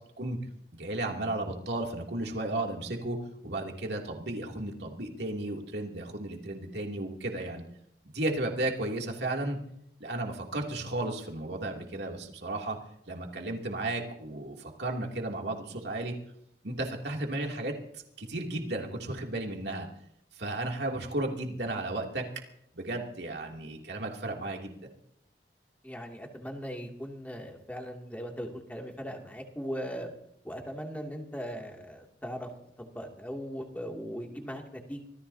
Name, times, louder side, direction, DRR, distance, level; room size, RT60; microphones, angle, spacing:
voice 1, 0.7-3.2 3.4-7.6 8.1-9.6 10.0-12.8 13.1-16.1 16.6-19.9 20.4-22.2 22.7-24.9, right 2 dB, 70° right, 0 dB, 2.8 m, -34 dB
voice 2, 25.8-30.1 30.4-32.5 32.8-35.1, equal, 10° left, 1 dB, 2.6 m, -39 dB
26.0 x 18.0 x 2.8 m, 0.74 s
head